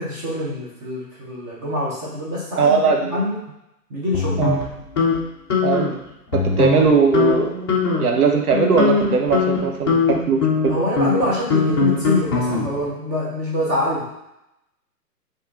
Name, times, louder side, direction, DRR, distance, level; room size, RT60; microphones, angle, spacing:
voice 1, 0.0-3.4 3.9-4.5 6.6-6.7 10.7-14.1, left 1 dB, 20° right, -7 dB, 1.0 m, -25 dB
voice 2, 2.6-3.2 4.4-4.6 5.6-5.9 6.3-7.7 8.0-10.8, right 5 dB, 65° right, 2 dB, 1.0 m, -19 dB
sound 1, 4.1-5.2 5.5-5.9 6.3-6.9 7.1-7.3 7.7-8.1 8.5-12.9, left 5 dB, 15° left, 0.5 m, -21 dB
4.7 x 3.1 x 3.6 m, 0.85 s
figure-of-eight pair, 135°, 47 cm